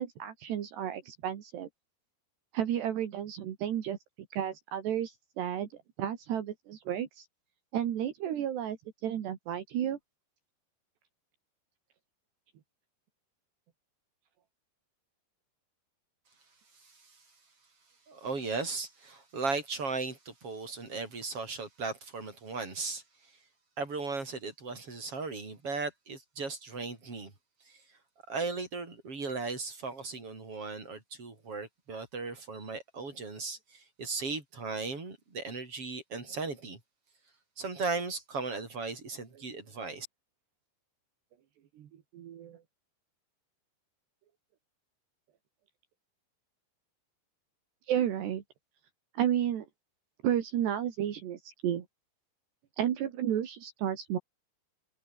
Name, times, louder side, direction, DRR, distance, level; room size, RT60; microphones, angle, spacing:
voice 1, 0.0-1.7 2.5-4.0 4.3-5.7 6.0-7.3 7.7-8.8 9.0-10.0 41.8-42.6 47.9-48.4 49.1-49.7 50.2-51.9 52.8-54.2, right 10 dB, 70° right, 4.2 m, -32 dB
voice 2, 16.8-17.2 18.1-23.3 23.8-27.3 27.7-27.8 28.3-36.8 37.6-40.1, right 4 dB, 30° right, 6.5 m, -37 dB
omnidirectional pair, 5.2 m